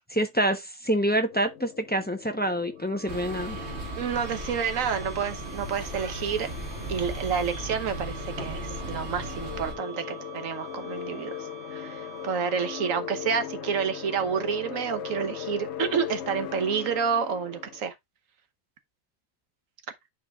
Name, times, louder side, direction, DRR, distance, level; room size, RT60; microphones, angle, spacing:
voice 1, 0.1-3.6, right 1 dB, 10° left, 0.5 m, -26 dB
sound 1, 1.3-17.8, left 9 dB, 60° left, 1.0 m, -40 dB
sound 2, 2.8-13.1, right 7 dB, 20° right, 1.4 m, -45 dB
sound 3, 3.1-9.7, equal, 50° right, 1.9 m, -37 dB
voice 2, 4.0-6.5 6.9-11.4 11.7-17.9, right 6 dB, 70° right, 1.3 m, -29 dB
11.0 x 4.4 x 2.4 m
omnidirectional pair, 1.5 m